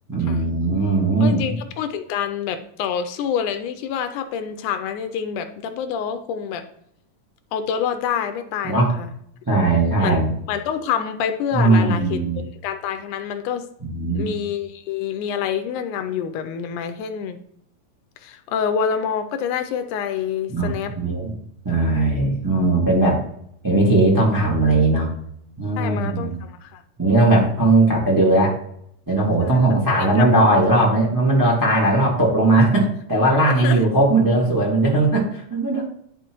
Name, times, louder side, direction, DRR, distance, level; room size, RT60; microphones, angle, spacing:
voice 1, 0.1-1.5 8.6-8.9 9.5-10.3 11.5-12.4 13.8-14.3 20.5-21.3 21.6-23.2 23.6-25.1 25.6-26.4 27.0-28.5 29.1-35.8, right 2 dB, 25° right, -4 dB, 0.4 m, -18 dB
voice 2, 1.2-6.7 7.5-9.1 10.0-10.2 10.5-13.7 14.1-17.4 18.2-20.9 25.8-26.8 29.4-29.6 30.0-30.3 33.5-33.8, left 8 dB, 80° left, 8 dB, 2.0 m, -27 dB
11.5 x 4.2 x 3.0 m, 0.71 s
omnidirectional pair, 3.7 m